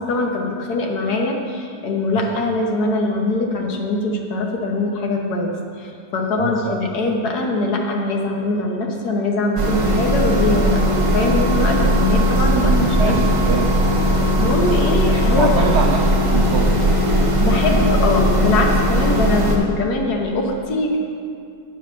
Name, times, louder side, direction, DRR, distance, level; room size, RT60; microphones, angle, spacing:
voice 1, 0.0-10.8 11.1-13.2 14.4-15.7 17.4-21.0, left 2 dB, 70° left, 1 dB, 1.5 m, -22 dB
voice 2, 6.4-6.8 12.5-13.9 15.0-17.1, right 5 dB, 90° right, 2 dB, 0.5 m, -25 dB
sound 1, 9.6-19.6, equal, 25° right, 0.7 m, -18 dB
9.0 x 5.0 x 6.1 m, 2.3 s
omnidirectional pair, 1.8 m